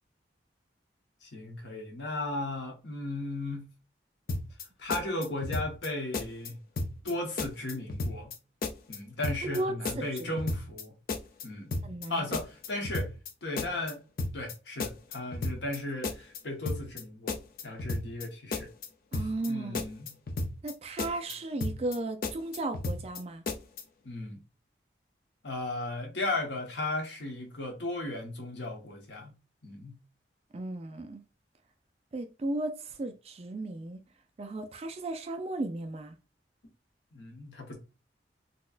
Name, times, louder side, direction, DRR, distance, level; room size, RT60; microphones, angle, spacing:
voice 1, 1.2-3.7 4.8-6.6 7.0-8.4 8.9-10.9 11.4-11.7 12.1-13.1 13.4-14.0 14.3-18.7 19.1-20.1 24.0-24.4 25.4-29.3 29.6-30.0 37.1-37.8, left 2 dB, 85° left, 1.0 m, -36 dB
sound 1, 4.3-4.6 4.9-5.9 6.1-6.5 6.8-7.1 7.4-8.4 8.6-9.0 9.2-9.6 9.8-10.8 11.1-11.4 11.7-12.1 12.3-13.3 13.6-13.9 14.2-14.5 14.8-15.8 16.0-16.4 16.7-17.0 17.3-18.2 18.5-18.9 19.1-19.5 19.7-20.7 21.0-21.3 21.6-22.0 22.2-23.2 23.5-23.8, left 2 dB, 55° left, 0.5 m, -33 dB
voice 2, 9.4-10.3 11.8-12.2 19.1-19.8 20.6-23.4 30.5-31.2 32.1-34.0 34.4-36.1, right 2 dB, 35° right, 0.3 m, -35 dB
4.0 x 2.2 x 2.4 m
head